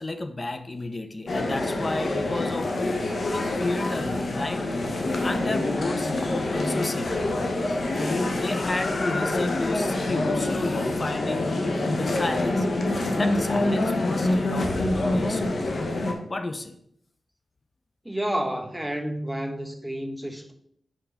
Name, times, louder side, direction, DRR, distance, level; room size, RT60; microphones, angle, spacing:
voice 1, 0.0-2.7 3.2-4.6 5.2-7.2 7.9-12.7 13.1-15.7 16.3-16.7, left 2 dB, 40° left, 9 dB, 0.7 m, -32 dB
sound 1, 1.3-16.1, left 2 dB, 65° left, 1.1 m, -26 dB
voice 2, 18.0-20.5, right 1 dB, ahead, 4 dB, 1.0 m, -30 dB
4.7 x 4.6 x 5.8 m, 0.71 s
cardioid pair, 55°, 0 cm